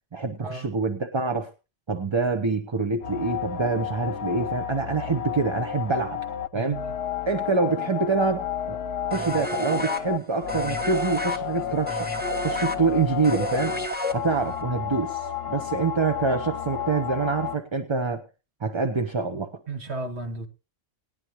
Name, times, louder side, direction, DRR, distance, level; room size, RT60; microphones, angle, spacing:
voice 1, 0.1-1.5 1.9-6.2 6.5-6.8 7.3-8.8 9.1-12.1 12.4-13.8 14.1-18.2 18.6-19.6, right 4 dB, 25° right, 6 dB, 0.7 m, -26 dB
sound 1, 3.0-17.6, left 10 dB, 60° left, 0.9 m, -32 dB
voice 2, 6.5-6.9 19.7-20.5, right 2 dB, 60° right, 4 dB, 2.0 m, -34 dB
sound 2, 9.1-14.6, equal, 10° right, 1.3 m, -31 dB
19.5 x 10.5 x 3.0 m, 0.29 s
omnidirectional pair, 1.3 m